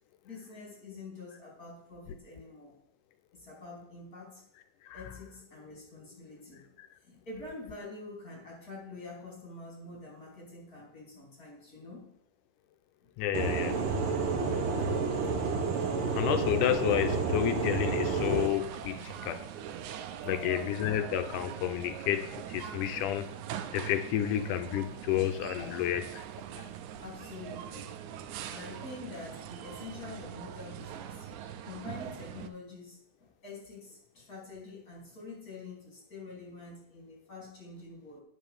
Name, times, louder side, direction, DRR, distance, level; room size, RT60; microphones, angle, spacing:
voice 1, 0.2-2.7 3.3-4.4 4.9-6.8 7.0-12.0 20.2-20.7 26.8-27.9 28.5-31.3 31.7-38.2, left 3 dB, 25° left, -3 dB, 3.7 m, -46 dB
voice 2, 13.2-13.8 16.2-19.4 20.2-23.3 23.7-26.2 26.6-26.7, left 11 dB, 80° left, 8 dB, 2.0 m, -30 dB
sound 1, 13.3-18.5, right 4 dB, 65° right, 1.4 m, -30 dB
sound 2, 18.1-32.5, right 9 dB, 80° right, 1.8 m, -42 dB
9.5 x 5.4 x 6.7 m, 0.73 s
omnidirectional pair, 3.9 m